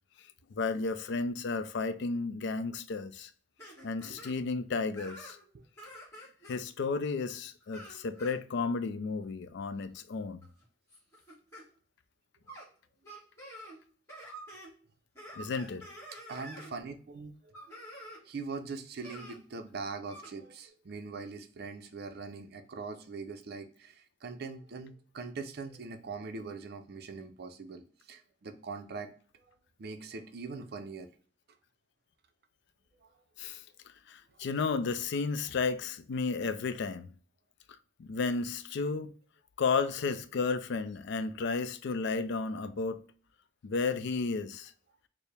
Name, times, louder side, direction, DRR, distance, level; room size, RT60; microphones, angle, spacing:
voice 1, 0.5-3.3 3.8-5.4 6.5-10.4 15.4-15.8 33.4-33.6 34.1-37.1 38.0-39.1 39.6-43.0 43.6-44.7, left 4 dB, 60° left, 0.4 m, -33 dB
sound 1, 3.6-4.3 5.0-5.5 5.8-6.6 7.6-8.3 9.8-10.0 10.4-11.6 12.5-12.7 13.0-13.8 14.1-14.7 15.2-16.7 17.5-18.2 19.0-19.4 20.1-20.3, right 1 dB, 15° left, 1.4 m, -48 dB
voice 2, 16.3-17.3 18.2-29.1 29.8-31.1 33.0-33.1, right 4 dB, 55° right, 0.5 m, -42 dB
4.5 x 2.0 x 3.3 m
head